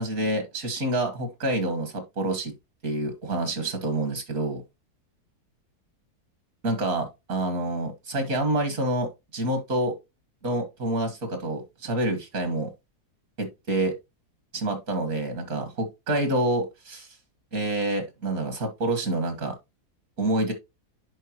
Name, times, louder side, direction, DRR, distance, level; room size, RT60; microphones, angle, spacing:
voice 1, 0.0-2.5 2.8-4.6 6.6-9.9 10.4-12.7 13.4-13.9 14.5-17.1 17.5-19.6 20.2-20.5, right 1 dB, 60° right, 2.1 m, -27 dB
10.0 x 4.3 x 3.0 m
omnidirectional pair, 1.7 m